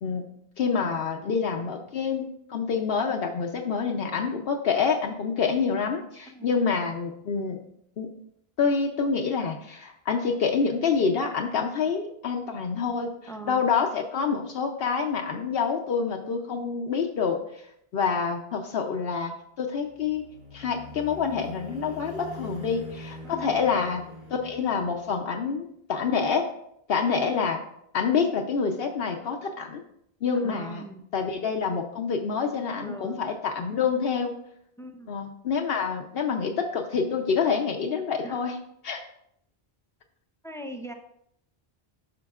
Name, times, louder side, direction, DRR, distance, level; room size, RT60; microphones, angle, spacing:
voice 1, 0.6-7.6 8.0-8.1 8.6-13.1 13.5-17.6 17.9-20.2 20.5-24.0 24.3-26.5 26.9-27.6 27.9-29.8 30.2-30.8 31.1-34.3 35.1-38.6 38.8-39.0, left 5 dB, 70° left, 2 dB, 0.9 m, -27 dB
voice 2, 13.3-13.7 23.2-23.6 30.3-31.0 32.8-33.1 34.8-35.2 38.2-38.4 40.4-40.9, right 1 dB, 5° left, 4 dB, 0.4 m, -40 dB
sound 1, 19.7-25.4, left 1 dB, 70° right, 1.8 m, -43 dB
9.7 x 6.0 x 2.4 m, 0.72 s
omnidirectional pair, 1.1 m